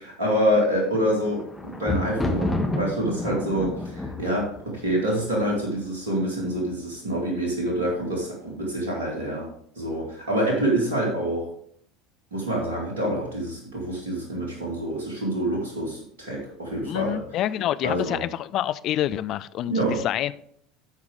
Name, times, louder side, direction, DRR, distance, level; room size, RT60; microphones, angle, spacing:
voice 1, 0.2-9.5 9.8-11.5 12.3-17.2 17.8-18.2 19.7-20.0, right 1 dB, 70° right, -1 dB, 2.3 m, -26 dB
Thunder, 0.8-6.0 6.7-7.2 7.5-7.6, left 2 dB, 5° left, 1.5 m, -30 dB
voice 2, 10.4-10.7 16.8-20.3, left 12 dB, 45° left, 14 dB, 0.4 m, -27 dB
13.0 x 4.9 x 3.4 m, 0.65 s
figure-of-eight pair, 70°, 0 cm